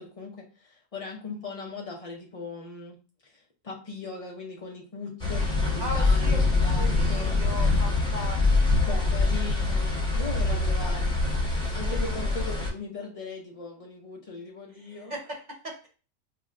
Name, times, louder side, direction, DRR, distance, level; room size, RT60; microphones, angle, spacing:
voice 1, 0.0-3.0 3.2-7.4 8.8-11.2 11.7-15.1, left 3 dB, 65° left, -2 dB, 0.3 m, -39 dB
sound 1, 5.2-12.7, left 3 dB, 5° left, 0.9 m, -24 dB
voice 2, 5.8-9.1 10.5-11.0 11.2-12.4 14.9-15.9, equal, 35° right, 0 dB, 0.9 m, -39 dB
5.6 x 2.1 x 2.4 m, 0.37 s
omnidirectional pair, 1.4 m